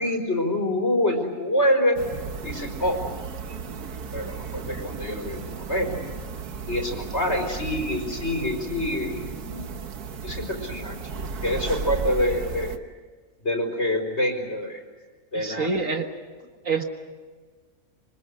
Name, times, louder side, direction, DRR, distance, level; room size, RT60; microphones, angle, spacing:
voice 1, 0.0-2.0 2.4-3.0 4.1-5.9 6.7-9.8 10.2-11.0 11.4-12.7 13.4-14.8 15.3-15.8, left 1 dB, 45° left, 3 dB, 4.8 m, -26 dB
sound 1, 2.0-12.8, right 5 dB, 90° right, 1.8 m, -35 dB
voice 2, 15.4-16.1 16.6-16.8, right 4 dB, 60° right, 5 dB, 2.0 m, -26 dB
27.0 x 25.5 x 6.6 m, 1.4 s
omnidirectional pair, 1.6 m